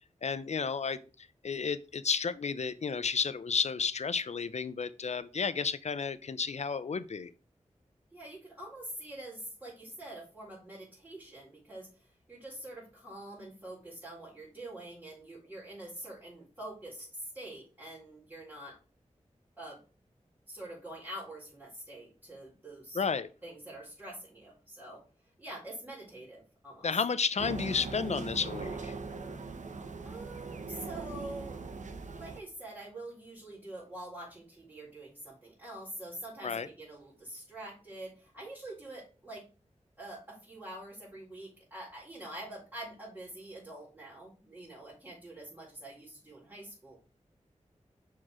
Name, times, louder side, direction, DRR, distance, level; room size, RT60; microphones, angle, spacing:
voice 1, 0.2-7.3 22.9-23.3 26.8-28.9 36.4-36.7, left 5 dB, 65° left, 14 dB, 0.5 m, -32 dB
voice 2, 8.1-18.8 19.6-19.8 20.5-23.0 23.4-25.0 25.4-27.0 30.0-31.6 32.2-39.4 40.0-47.0, right 1 dB, 15° right, -8 dB, 4.3 m, -45 dB
sound 1, 27.4-32.4, right 4 dB, 75° right, 0.9 m, -40 dB
6.1 x 4.6 x 4.8 m, 0.36 s
cardioid pair, 50°, 13 cm